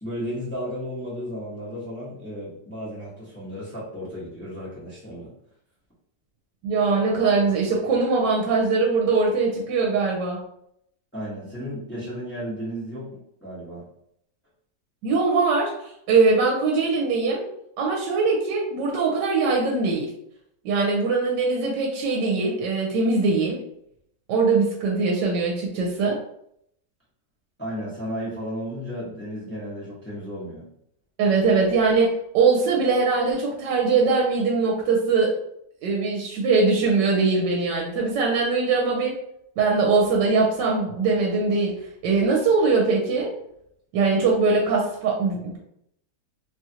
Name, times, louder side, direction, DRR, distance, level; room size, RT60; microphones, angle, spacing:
voice 1, 0.0-5.3 11.1-13.1 13.4-13.8 27.6-30.6, equal, 10° left, -9 dB, 0.7 m, -34 dB
voice 2, 6.6-10.4 15.0-17.4 17.8-20.1 20.6-23.6 24.3-26.2 31.2-35.4 35.8-39.2 39.6-41.7 42.0-43.3 43.9-45.6, right 4 dB, 80° right, -1 dB, 1.2 m, -21 dB
3.0 x 2.4 x 2.7 m, 0.73 s
omnidirectional pair, 1.9 m